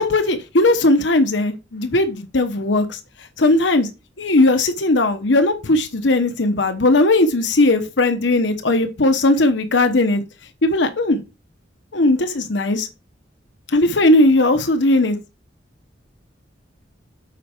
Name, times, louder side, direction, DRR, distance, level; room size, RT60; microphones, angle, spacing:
voice 1, 0.0-3.0 3.4-3.9 4.2-10.2 10.6-11.2 11.9-12.9 13.7-15.2, left 2 dB, 80° left, 1.0 m, -17 dB
8.2 x 5.5 x 4.4 m
head